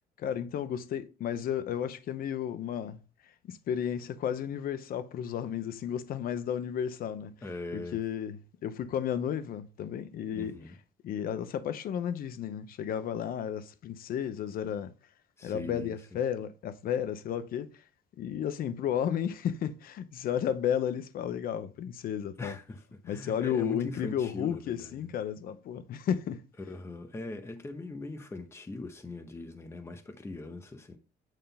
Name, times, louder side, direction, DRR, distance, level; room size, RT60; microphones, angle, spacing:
voice 1, 0.2-7.3 7.7-8.4 8.6-10.5 11.0-14.9 15.4-17.8 18.2-22.5 23.1-26.4, left 9 dB, 60° left, 0.8 m, -33 dB
voice 2, 7.4-8.0 10.3-10.8 15.4-16.1 22.4-25.1 26.6-31.0, left 2 dB, 15° left, 0.9 m, -41 dB
9.2 x 3.7 x 5.5 m
cardioid pair, 110°, 17 cm